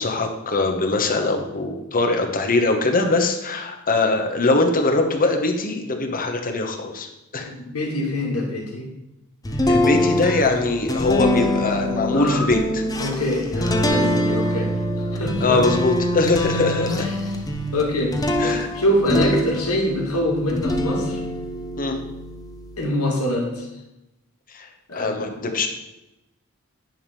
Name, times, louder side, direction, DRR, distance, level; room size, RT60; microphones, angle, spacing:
voice 1, 0.0-7.5 9.7-12.8 15.4-17.1 18.4-18.7 21.7-22.0 24.5-25.7, left 2 dB, 40° left, 3 dB, 1.2 m, -22 dB
voice 2, 7.4-8.9 12.1-12.5 13.0-14.7 15.0-15.7 16.8-17.2 17.7-18.1 18.7-21.2 22.8-23.7 24.9-25.4, left 1 dB, 85° left, -2 dB, 2.4 m, -24 dB
sound 1, 9.5-20.0 20.5-22.8, left 1 dB, 15° left, 0.8 m, -24 dB
10.5 x 3.6 x 7.0 m, 0.94 s
head